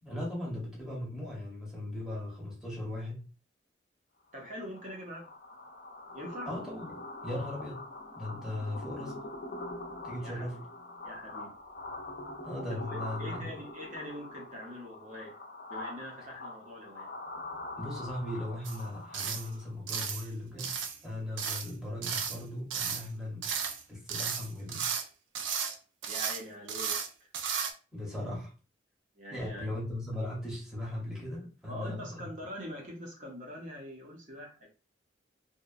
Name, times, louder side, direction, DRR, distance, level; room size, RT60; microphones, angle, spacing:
voice 1, 0.0-3.3 6.5-7.8 8.1-9.3 10.0-10.6 12.4-13.5 17.8-20.7 21.0-23.5 23.9-24.9 27.9-28.5 29.3-32.3, left 1 dB, ahead, -5 dB, 0.8 m, -38 dB
voice 2, 4.3-5.3 6.1-6.5 10.2-10.5 11.0-11.5 12.7-15.4 15.7-17.1 26.1-27.3 29.1-29.7 31.7-34.7, equal, 40° right, 0 dB, 0.7 m, -43 dB
sound 1, 4.4-19.7, left 2 dB, 50° left, 0.5 m, -44 dB
sound 2, 18.6-18.8 19.1-19.5 19.9-20.3 20.6-21.0 21.4-21.7 22.0-22.4 22.7-23.1 23.4-23.8 24.1-25.0 25.3-25.8 26.0-26.4 26.7-27.1 27.3-27.7, right 7 dB, 75° right, 0.4 m, -34 dB
2.8 x 2.1 x 2.4 m, 0.36 s
head